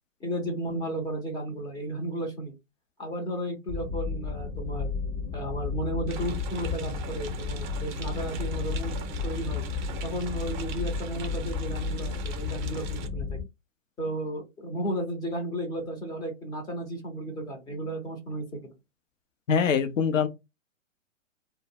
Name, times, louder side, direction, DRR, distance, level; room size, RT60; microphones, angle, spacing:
voice 1, 0.2-2.5 3.0-4.9 5.3-8.9 9.2-9.6 10.0-13.4 14.0-18.7, right 1 dB, 10° left, 0.5 m, -34 dB
sound 1, 3.7-13.4, left 5 dB, 40° left, 0.9 m, -33 dB
sound 2, 6.1-13.1, right 7 dB, 40° right, 0.5 m, -41 dB
voice 2, 19.5-20.3, left 6 dB, 80° left, 0.6 m, -23 dB
2.0 x 2.0 x 3.4 m
hypercardioid pair, 120°, 38 cm